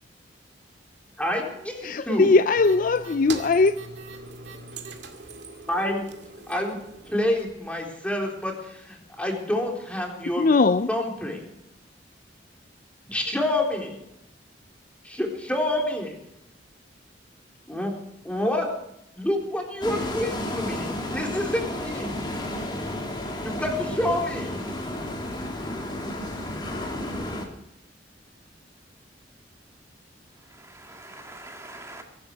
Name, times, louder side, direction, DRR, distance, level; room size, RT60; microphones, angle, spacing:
voice 1, 1.2-2.3 5.7-6.1 6.5-6.8 7.0-10.5 10.9-11.5 13.1-13.9 15.0-16.2 17.7-17.9 18.2-18.7 19.2-22.2 23.4-24.6, left 1 dB, 5° left, 3.9 m, -28 dB
voice 2, 1.8-3.8 10.4-10.9, left 3 dB, 50° left, 0.5 m, -20 dB
sound 1, 2.6-7.5, right 3 dB, 70° right, 2.2 m, -41 dB
sound 2, 19.8-27.5, left 1 dB, 25° left, 3.1 m, -32 dB
voice 3, 30.4-32.0, right 2 dB, 15° right, 2.1 m, -44 dB
23.5 x 11.5 x 4.7 m
head